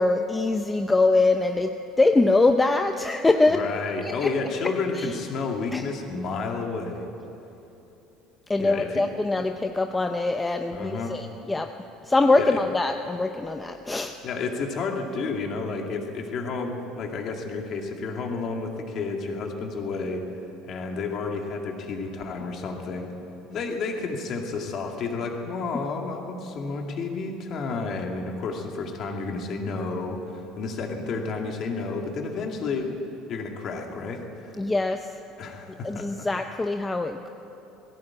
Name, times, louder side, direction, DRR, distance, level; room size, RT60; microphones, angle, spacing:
voice 1, 0.0-1.7 2.0-3.6 5.7-5.8 8.5-11.2 11.5-11.7 12.1-14.1 34.6-35.0 35.8-37.3, left 2 dB, 10° left, 6 dB, 0.5 m, -23 dB
voice 2, 3.5-7.1 8.6-9.0 9.4-9.5 10.7-11.2 12.3-12.6 14.2-20.2 20.6-23.1 23.5-33.0 33.3-34.5 35.4-36.3, left 4 dB, 35° left, 2 dB, 2.3 m, -31 dB
19.5 x 16.5 x 8.7 m, 2.9 s
cardioid pair, 175°, 0 cm